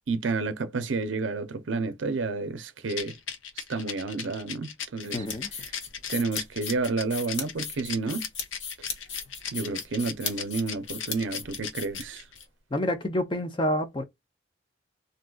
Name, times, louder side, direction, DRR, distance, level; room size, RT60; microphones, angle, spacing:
voice 1, 0.1-3.1 3.6-5.3 5.6-5.8 6.1-8.2 9.5-12.2, right 3 dB, 75° right, 0.5 m, -30 dB
Rattle, 2.9-12.4, left 7 dB, 80° left, 0.7 m, -37 dB
sound 1, 5.0-12.4, left 6 dB, 65° left, 1.0 m, -37 dB
voice 2, 5.1-5.5 12.7-14.0, left 1 dB, 25° left, 0.6 m, -28 dB
3.7 x 2.6 x 2.2 m
head